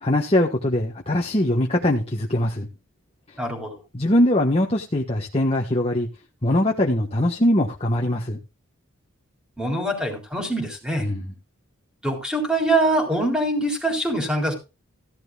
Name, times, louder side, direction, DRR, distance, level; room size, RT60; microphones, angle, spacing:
voice 1, 0.0-2.7 3.9-6.1 6.4-8.4 11.0-11.3, left 1 dB, 25° left, 1.4 m, -22 dB
voice 2, 3.4-3.8 9.6-11.1 12.0-14.5, right 1 dB, 5° right, 3.9 m, -24 dB
15.0 x 12.0 x 2.4 m
head